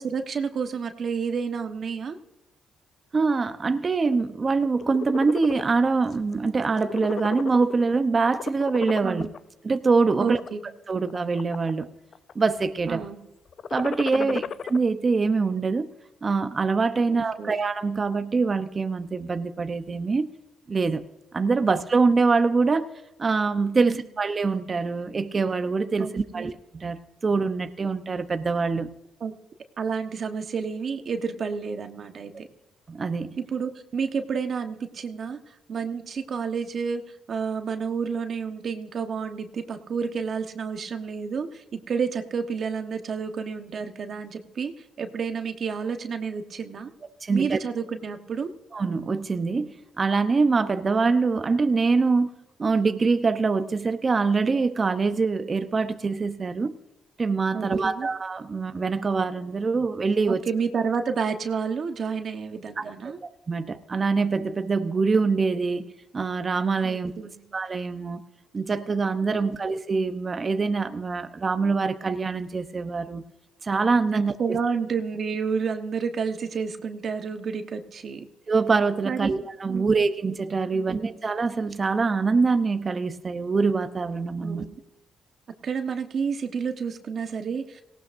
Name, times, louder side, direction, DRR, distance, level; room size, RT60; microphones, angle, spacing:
voice 1, 0.0-2.2 9.0-9.3 10.2-10.7 12.9-13.2 14.1-14.4 17.1-17.5 23.8-24.0 26.0-26.5 29.2-29.3 29.8-32.5 33.4-35.4 35.7-37.0 37.3-44.7 45.0-46.9 47.3-48.5 57.5-58.1 60.3-63.2 66.8-67.5 74.4-78.2 79.0-79.3 79.7-79.9 80.7-81.1 84.4-84.8 85.6-87.8, right 6 dB, 50° right, 1.2 m, -30 dB
voice 2, 3.1-9.3 9.6-10.4 10.9-11.9 12.4-13.0 13.7-15.9 16.2-20.3 20.7-21.0 21.3-22.9 23.2-28.9 32.9-33.4 47.2-47.6 48.7-52.3 52.6-56.8 57.2-60.4 62.8-63.1 63.5-67.1 67.5-68.2 68.5-73.3 73.6-74.3 78.5-84.6, right 4 dB, 35° right, 0.8 m, -24 dB
sound 1, 4.6-5.6 6.1-6.3 6.6-7.9 8.3-9.4 10.0-10.5 11.1-11.8 12.1-12.6 13.5-14.8, left 7 dB, 55° left, 0.5 m, -34 dB
18.0 x 18.0 x 2.6 m
cardioid pair, 90°, 0 cm